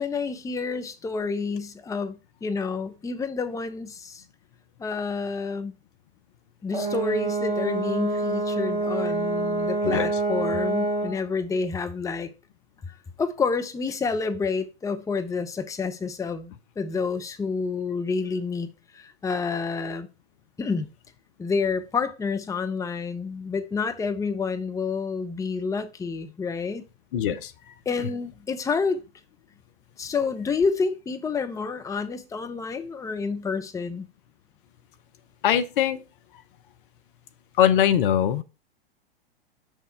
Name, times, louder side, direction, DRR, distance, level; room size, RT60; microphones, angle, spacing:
voice 1, 0.0-4.2 4.8-5.7 6.6-12.3 13.2-18.7 18.9-20.1 20.6-20.9 21.4-26.8 27.9-29.0 30.0-34.1, left 4 dB, 10° left, 0.8 m, -29 dB
Brass instrument, 6.7-11.2, right 2 dB, 15° right, 1.7 m, -26 dB
voice 2, 27.1-27.5 35.4-36.0 37.6-38.4, left 10 dB, 55° left, 0.8 m, -21 dB
6.6 x 6.4 x 4.6 m
figure-of-eight pair, 100°, 31 cm